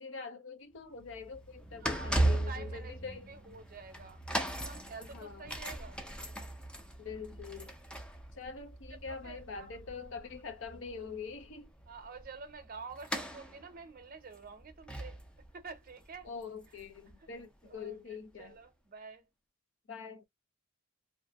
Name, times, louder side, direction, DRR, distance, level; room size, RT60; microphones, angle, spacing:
voice 1, 0.0-3.3 5.1-5.4 7.0-7.7 8.3-11.7 16.3-18.5 19.9-20.3, left 5 dB, 65° left, 0.6 m, -44 dB
sound 1, 0.8-17.7 18.4-18.5, right 1 dB, 5° left, 0.4 m, -38 dB
voice 2, 1.8-6.0 9.1-9.7 10.7-10.8 11.9-15.2 15.5-16.3 17.2-17.3 17.6-19.3, right 4 dB, 45° right, 0.7 m, -49 dB
2.6 x 2.5 x 2.3 m
head